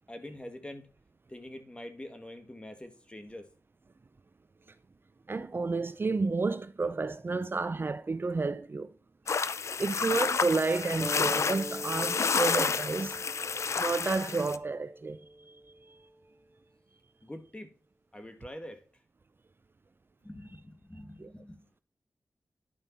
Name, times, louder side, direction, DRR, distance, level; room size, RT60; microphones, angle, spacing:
voice 1, 0.1-0.9 1.3-3.5 17.2-17.7 18.1-18.8 20.2-21.7, left 1 dB, 20° left, 2.1 m, -45 dB
voice 2, 5.3-8.9 9.8-13.2 13.8-15.2 15.5-15.6 21.2-21.3, right 3 dB, 45° right, 0.6 m, -31 dB
sound 1, 9.3-14.6, left 5 dB, 65° left, 0.6 m, -30 dB
sound 2, 11.0-16.1, right 1 dB, 10° right, 1.1 m, -43 dB
11.0 x 5.3 x 4.2 m
cardioid pair, 45°, 5 cm